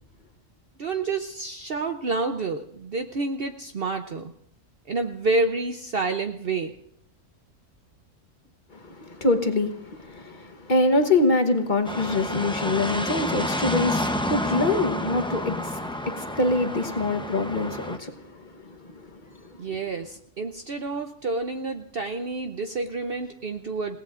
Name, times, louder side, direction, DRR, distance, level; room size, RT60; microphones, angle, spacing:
voice 1, 0.8-4.3 4.9-6.7 19.6-24.0, right 3 dB, 50° right, 6 dB, 0.9 m, -29 dB
voice 2, 8.7-19.8, left 2 dB, 40° left, 6 dB, 1.2 m, -25 dB
sound 1, 11.8-18.0, left 1 dB, 5° left, 0.5 m, -29 dB
29.0 x 17.5 x 2.5 m, 0.66 s
omnidirectional pair, 1.4 m